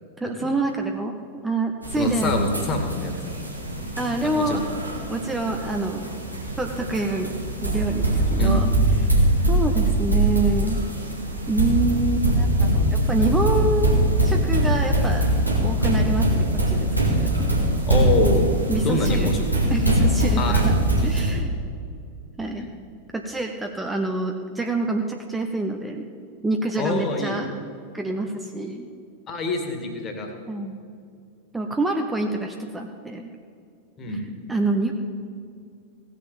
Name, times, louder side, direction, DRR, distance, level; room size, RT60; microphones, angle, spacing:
voice 1, 0.2-1.2 1.4-2.4 4.0-4.7 5.1-6.1 6.6-7.3 7.6-8.7 9.0-9.1 9.5-10.8 11.5-13.9 14.2-15.2 15.6-16.9 17.2-17.5 18.7-19.4 19.7-20.7 21.0-21.5 22.4-22.7 23.1-26.1 26.4-27.5 27.9-28.9 30.5-30.8 31.5-33.3 34.1-34.9, right 2 dB, 10° right, 3 dB, 0.9 m, -26 dB
sound 1, 1.8-21.3, right 1 dB, 85° right, 2.3 m, -22 dB
voice 2, 2.0-3.4 4.3-4.6 8.4-8.5 17.9-18.5 18.8-19.4 20.4-20.6 22.6-22.7 26.8-27.4 29.3-30.3 34.0-34.3, left 2 dB, 30° left, 4 dB, 2.2 m, -25 dB
17.0 x 6.7 x 7.1 m, 2.4 s
figure-of-eight pair, 90°, 0 cm